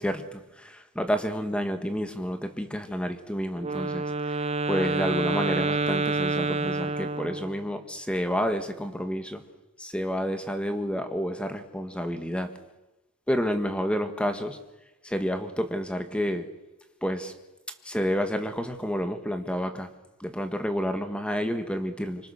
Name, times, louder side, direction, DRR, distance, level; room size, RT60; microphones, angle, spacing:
voice 1, 0.0-4.1 4.7-9.4 9.8-12.5 13.3-14.6 15.0-16.4 17.0-17.3 17.8-19.9 20.2-22.3, equal, 5° left, 7 dB, 1.6 m, -29 dB
Wind instrument woodwind instrument, 3.6-7.7, right 3 dB, 30° right, 1.0 m, -28 dB
26.0 x 24.5 x 6.7 m, 1.0 s
head